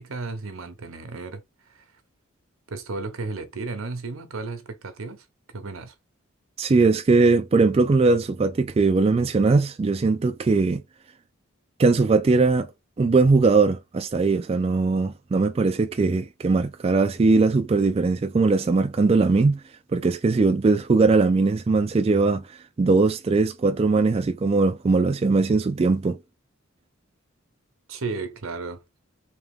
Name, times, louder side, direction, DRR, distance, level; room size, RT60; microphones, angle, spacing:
voice 1, 0.0-1.4 1.7-1.8 2.7-5.2 5.5-5.9 27.9-28.8, right 3 dB, 75° right, 0.8 m, -34 dB
voice 2, 6.6-10.8 11.8-12.7 13.0-19.6 19.9-26.2, right 3 dB, 30° right, 0.3 m, -20 dB
3.5 x 2.9 x 3.4 m
head